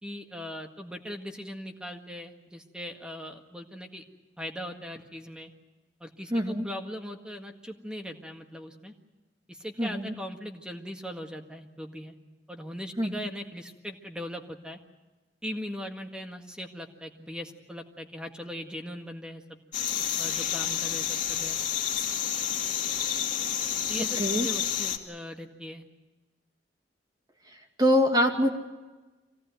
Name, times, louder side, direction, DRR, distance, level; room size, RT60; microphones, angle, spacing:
voice 1, 0.0-4.0 4.4-5.5 6.0-8.9 9.5-12.1 12.5-14.8 15.4-19.6 20.2-21.6 23.9-25.8, equal, 5° right, 4 dB, 1.8 m, -39 dB
voice 2, 6.3-6.6 9.8-10.1 13.0-13.2 24.2-24.5 27.8-28.5, equal, 25° right, 3 dB, 2.5 m, -24 dB
sound 1, 19.7-25.0, left 9 dB, 45° left, 2.4 m, -29 dB
25.0 x 17.5 x 9.3 m, 1.2 s
head